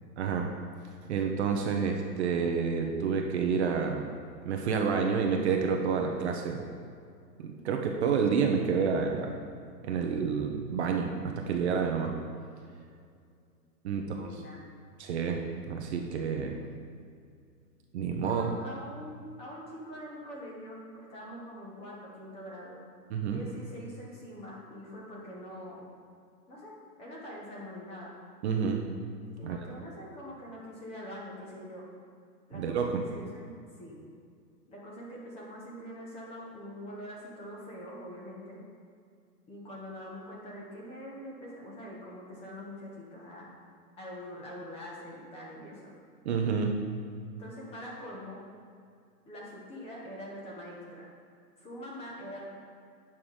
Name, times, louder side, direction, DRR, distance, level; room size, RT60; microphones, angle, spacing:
voice 1, 0.2-0.5 1.1-4.1 4.4-6.6 7.4-9.3 9.8-12.1 13.8-14.4 15.0-15.4 15.7-16.6 17.9-18.5 23.1-23.4 28.4-28.8 29.4-29.6 32.5-33.0 46.2-46.8, right 6 dB, 45° right, 3 dB, 0.8 m, -29 dB
voice 2, 13.9-14.6 18.2-22.8 23.3-25.9 26.5-28.1 29.4-31.9 32.5-34.0 34.7-38.6 39.5-43.5 44.0-46.0 47.4-48.4 49.3-51.1 51.6-52.4, equal, 10° left, -4 dB, 1.1 m, -44 dB
8.9 x 5.8 x 4.8 m, 2.3 s
hypercardioid pair, 155°, 48 cm